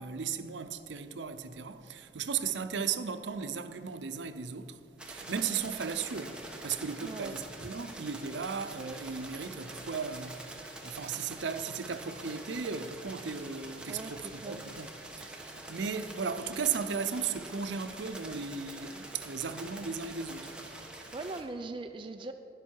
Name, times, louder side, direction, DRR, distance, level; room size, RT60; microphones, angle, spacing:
voice 1, 0.0-4.8 5.1-20.5, right 6 dB, 85° right, 0.6 m, -36 dB
sound 1, 5.0-21.4, right 2 dB, 5° right, 1.0 m, -46 dB
voice 2, 7.0-7.4 13.9-14.6 21.1-22.3, right 3 dB, 30° right, 0.3 m, -40 dB
12.0 x 10.5 x 4.6 m
head